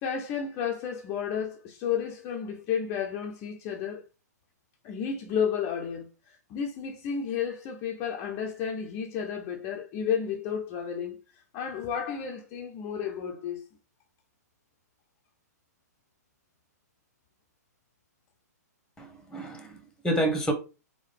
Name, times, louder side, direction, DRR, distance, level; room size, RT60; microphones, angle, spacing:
voice 1, 0.0-4.0 4.8-13.7, left 7 dB, 30° left, 0.6 m, -32 dB
voice 2, 19.0-20.5, right 1 dB, 5° left, 1.1 m, -29 dB
3.8 x 3.6 x 3.3 m
hypercardioid pair, 125°, 9 cm